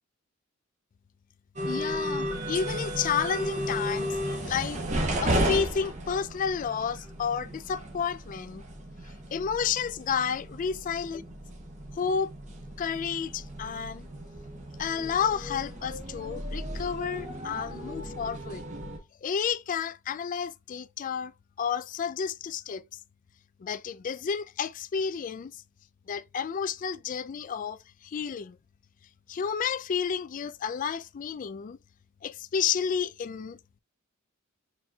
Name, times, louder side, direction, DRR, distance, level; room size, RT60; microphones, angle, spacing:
sound 1, 1.6-19.0, equal, 35° right, 1.1 m, -34 dB
voice 1, 1.7-4.8 5.2-8.6 9.3-11.2 11.9-12.3 12.8-14.1 14.8-18.6 19.2-21.3 21.6-22.8 23.6-25.6 26.1-28.6 29.3-31.8 32.2-33.6, left 7 dB, 40° left, 0.3 m, -31 dB
4.2 x 4.1 x 2.3 m
head